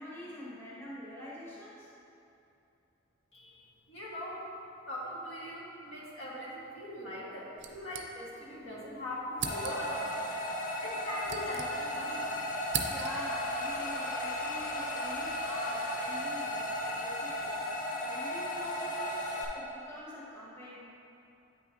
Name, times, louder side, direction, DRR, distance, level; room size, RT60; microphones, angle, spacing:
voice 1, 0.0-1.9 12.9-17.6 18.0-19.2 19.5-20.8, equal, 10° left, -8 dB, 1.1 m, -45 dB
voice 2, 3.3-4.4 4.9-10.2 10.8-12.2, left 1 dB, 75° left, -6 dB, 1.4 m, -41 dB
sound 1, 7.6-8.6 8.8-8.9 9.3-10.0 10.9-12.1 12.4-13.4, right 7 dB, 60° right, 0.5 m, -39 dB
sound 2, 9.4-19.4, left 1 dB, 45° left, 0.8 m, -35 dB
8.4 x 5.8 x 2.6 m, 2.8 s
head